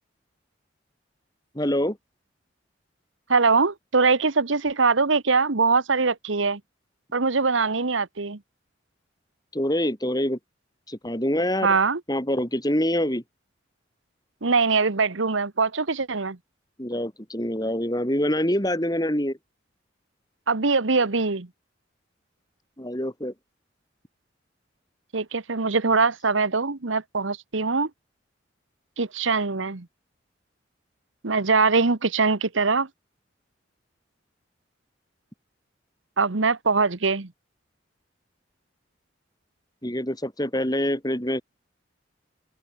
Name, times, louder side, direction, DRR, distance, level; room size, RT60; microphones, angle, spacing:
voice 1, 1.5-2.0 9.5-10.4 10.9-11.8 12.1-13.2 16.8-19.4 22.8-23.3 39.8-41.4, left 1 dB, 20° left, 5.4 m, -25 dB
voice 2, 3.3-6.6 7.1-8.4 11.6-12.0 14.4-16.4 20.5-21.5 25.1-27.9 29.0-29.9 31.2-32.9 36.2-37.3, right 4 dB, 80° right, 1.2 m, -22 dB
open air
head